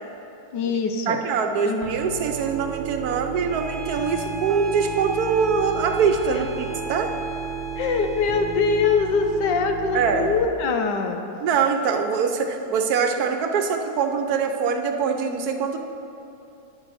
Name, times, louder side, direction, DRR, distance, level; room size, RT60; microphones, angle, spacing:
voice 1, 0.5-1.2 1.6-2.0 6.3-6.4 7.8-11.2, left 5 dB, 80° left, 5 dB, 1.4 m, -23 dB
voice 2, 1.1-7.1 9.9-10.3 11.4-15.8, right 6 dB, 65° right, 6 dB, 1.2 m, -23 dB
Piano, 1.8-10.5, right 7 dB, 85° right, 1.2 m, -34 dB
Bowed string instrument, 3.4-9.1, left 1 dB, 15° right, 1.2 m, -36 dB
10.5 x 9.7 x 4.2 m, 2.8 s
omnidirectional pair, 1.8 m